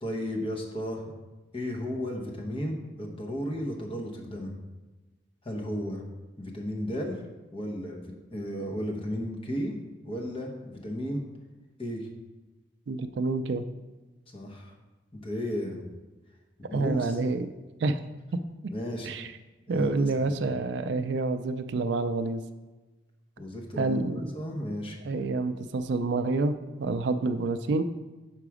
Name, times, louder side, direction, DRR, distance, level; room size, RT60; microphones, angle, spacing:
voice 1, 0.0-1.1 1.5-4.5 5.4-6.0 6.4-7.2 7.5-11.2 11.8-12.1 14.3-14.7 15.1-15.8 16.6-17.2 18.7-19.1 19.7-20.4 23.4-25.2, equal, 30° left, 0 dB, 1.0 m, -34 dB
voice 2, 12.9-13.6 16.7-17.5 17.8-18.0 19.0-19.3 19.7-22.4 23.8-24.2 25.0-26.5 26.8-27.8, right 3 dB, 60° right, 10 dB, 0.4 m, -28 dB
5.9 x 4.9 x 4.8 m, 1.2 s
head